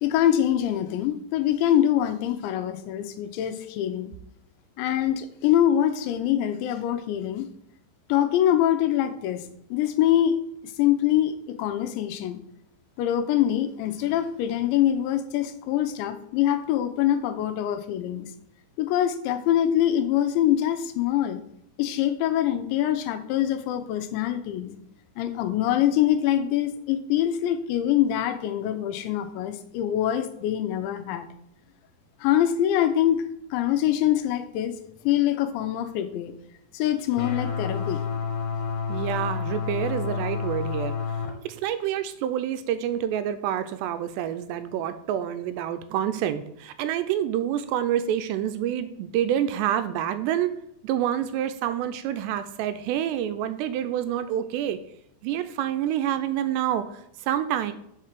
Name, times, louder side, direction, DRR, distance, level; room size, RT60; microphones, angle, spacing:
voice 1, 0.0-4.1 4.8-7.5 8.1-9.4 9.7-10.4 10.8-12.4 13.0-18.3 18.8-21.4 21.8-24.8 25.2-31.3 32.2-33.3 33.5-34.8 35.0-36.4 36.7-38.0, left 11 dB, 85° left, 9 dB, 3.0 m, -24 dB
sound 1, 37.2-41.3, left 6 dB, 60° left, 2.6 m, -29 dB
voice 2, 38.9-41.2 41.4-50.5 50.8-54.8 55.2-57.7, right 10 dB, 85° right, 10 dB, 2.6 m, -27 dB
6.5 x 5.7 x 6.6 m, 0.76 s
omnidirectional pair, 5.2 m